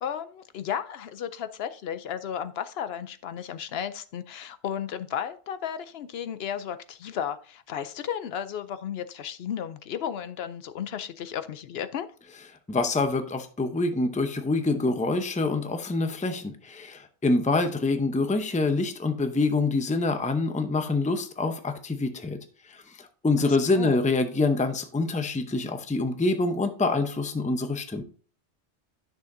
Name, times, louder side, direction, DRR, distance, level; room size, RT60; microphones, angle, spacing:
voice 1, 0.0-12.1 23.4-24.0, left 9 dB, 70° left, 12 dB, 0.8 m, -34 dB
voice 2, 12.7-22.4 22.7-28.0, left 3 dB, 10° left, 7 dB, 0.5 m, -26 dB
10.0 x 6.3 x 2.6 m, 0.41 s
omnidirectional pair, 1.2 m